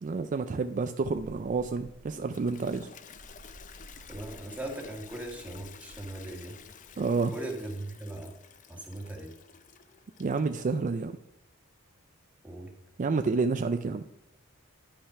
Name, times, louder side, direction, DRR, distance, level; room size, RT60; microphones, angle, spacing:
voice 1, 0.0-2.9 7.0-7.3 10.2-11.2 13.0-14.0, right 4 dB, 35° right, 9 dB, 0.3 m, -29 dB
sound 1, 1.0-7.9, right 1 dB, 60° right, 1.1 m, -54 dB
Toilet flush, 2.1-10.7, left 7 dB, 35° left, 0.5 m, -52 dB
voice 2, 4.1-6.6 7.3-8.3 8.7-9.3 12.4-12.7, right 1 dB, 5° right, 0 dB, 1.6 m, -39 dB
10.5 x 5.5 x 5.6 m, 0.81 s
head